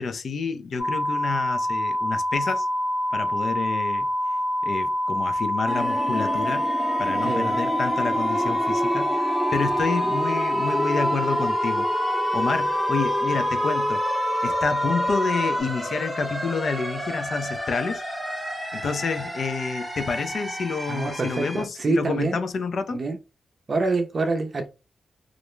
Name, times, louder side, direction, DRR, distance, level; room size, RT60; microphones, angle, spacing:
voice 1, 0.0-2.7 3.1-4.1 4.6-6.7 7.0-9.2 9.5-11.9 12.3-14.0 14.4-18.0 18.7-23.0, left 4 dB, 65° left, 0.4 m, -29 dB
sound 1, 0.8-15.6, left 1 dB, 40° left, 0.8 m, -26 dB
sound 2, 5.7-21.6, equal, 5° right, 0.7 m, -30 dB
voice 2, 7.1-7.6 8.5-8.6 20.9-22.4 22.9-23.2 23.7-24.7, right 3 dB, 45° right, 0.5 m, -26 dB
2.4 x 2.1 x 3.0 m
cardioid pair, 95°, 0 cm